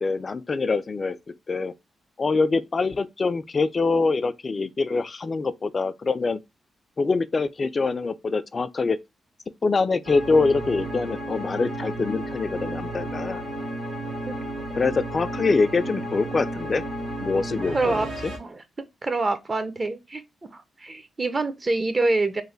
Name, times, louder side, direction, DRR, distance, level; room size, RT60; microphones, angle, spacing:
voice 1, 0.0-1.2 1.5-1.7 2.2-6.4 7.0-9.0 9.6-13.4 14.8-16.8 17.2-18.3, left 4 dB, 45° left, 0.3 m, -24 dB
sound 1, 10.0-18.4, right 1 dB, 85° right, 1.2 m, -33 dB
voice 2, 17.7-18.1 18.4-18.6 19.0-20.2 20.5-22.4, right 2 dB, 35° right, 0.6 m, -26 dB
3.1 x 2.1 x 3.8 m
supercardioid pair, 55°, 0 cm